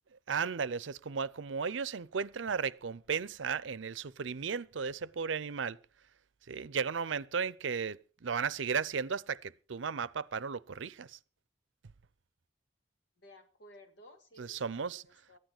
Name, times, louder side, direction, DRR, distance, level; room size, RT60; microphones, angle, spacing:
voice 1, 0.3-5.8 6.5-11.2 14.4-15.0, right 6 dB, 90° right, 0.6 m, -35 dB
voice 2, 13.2-15.4, equal, 80° left, 2.5 m, -57 dB
14.0 x 10.5 x 6.0 m
head